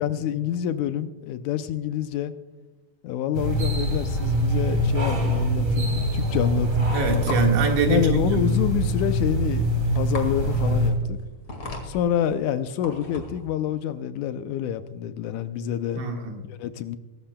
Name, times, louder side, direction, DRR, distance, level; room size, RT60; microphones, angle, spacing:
voice 1, 0.0-2.3 3.0-6.9 7.9-11.2 11.8-16.0 16.5-17.0, left 10 dB, 80° left, 10 dB, 1.9 m, -27 dB
sound 1, 3.3-10.9, right 1 dB, 30° right, 3.2 m, -24 dB
voice 2, 6.9-8.5 11.6-11.7 15.9-16.4, right 3 dB, 75° right, 1 dB, 3.2 m, -24 dB
sound 2, 7.1-13.5, left 2 dB, 45° left, 2.4 m, -38 dB
23.0 x 13.0 x 2.2 m, 1.2 s
omnidirectional pair, 3.7 m